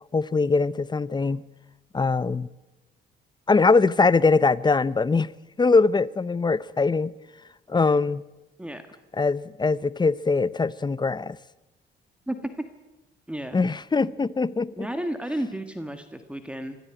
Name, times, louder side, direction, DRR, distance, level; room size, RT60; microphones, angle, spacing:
voice 1, 0.1-1.4 1.9-2.5 3.5-5.3 5.6-7.1 7.7-8.2 9.2-11.4 13.5-14.7, left 4 dB, 20° left, 0.7 m, -22 dB
voice 2, 8.6-9.0 12.3-12.6 13.3-13.6 14.8-16.8, right 1 dB, 5° right, 1.7 m, -32 dB
22.5 x 13.5 x 9.1 m
cardioid pair, 90°, 20 cm